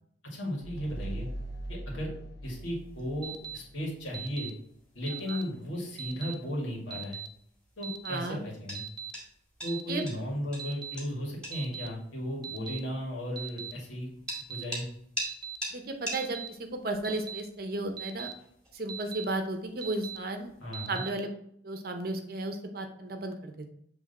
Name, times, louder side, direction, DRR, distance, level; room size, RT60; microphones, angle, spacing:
voice 1, 0.2-1.3 1.7-2.1 2.4-4.5 4.9-7.2 7.8-8.8 9.6-14.1 14.5-14.9 20.6-21.0, equal, 80° left, -3 dB, 2.1 m, -35 dB
sound 1, 0.6-4.0, right 1 dB, 60° left, 1.0 m, -41 dB
sound 2, 2.4-20.7, equal, 5° left, 2.1 m, -46 dB
Alarm, 3.2-3.6 4.1-4.5 5.1-5.4 6.0-6.3 6.9-7.3 7.8-8.2 8.8-9.1 9.7-10.0 10.6-11.0 11.5-11.9 12.4-12.8 13.4-13.7 14.3-14.6 15.2-15.6 16.1-16.5 17.0-17.4 18.0-18.3 18.9-19.3 19.8-20.2 20.7-21.1, right 9 dB, 20° right, 0.3 m, -39 dB
voice 2, 8.0-8.4 9.9-10.0 15.7-18.3 18.7-20.5 20.9-21.3 21.6-23.8, right 2 dB, 50° right, 5 dB, 0.8 m, -34 dB
7.4 x 3.3 x 4.2 m, 0.70 s
head